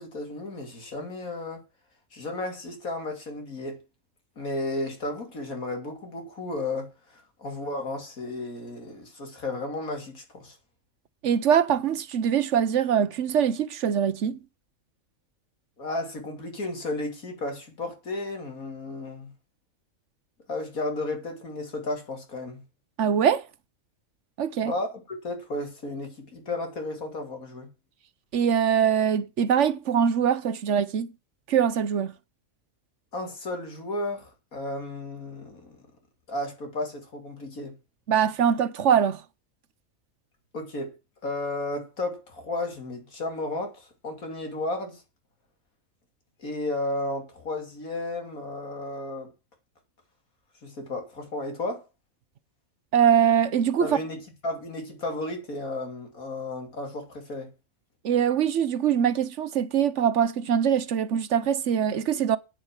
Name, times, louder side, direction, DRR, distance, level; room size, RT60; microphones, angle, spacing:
voice 1, 0.0-1.6 2.1-3.8 4.4-10.6 15.8-19.3 20.5-22.6 24.6-27.7 33.1-35.8 36.3-37.8 40.5-40.9 41.2-45.0 46.4-49.3 50.6-51.8 53.8-57.5, left 2 dB, 85° left, 3.2 m, -33 dB
voice 2, 11.2-14.4 23.0-23.4 24.4-24.7 28.3-31.1 31.5-32.1 38.1-39.2 52.9-54.0 58.0-62.4, right 8 dB, 60° right, 1.0 m, -23 dB
9.1 x 7.1 x 7.2 m
omnidirectional pair, 1.4 m